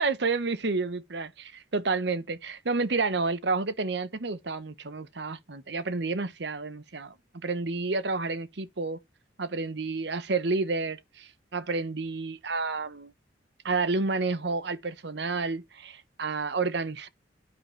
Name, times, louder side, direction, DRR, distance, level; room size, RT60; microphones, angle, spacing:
voice 1, 0.0-9.0 9.4-13.1 13.6-17.1, right 3 dB, 65° right, 0.9 m, -30 dB
10.0 x 9.7 x 3.3 m
head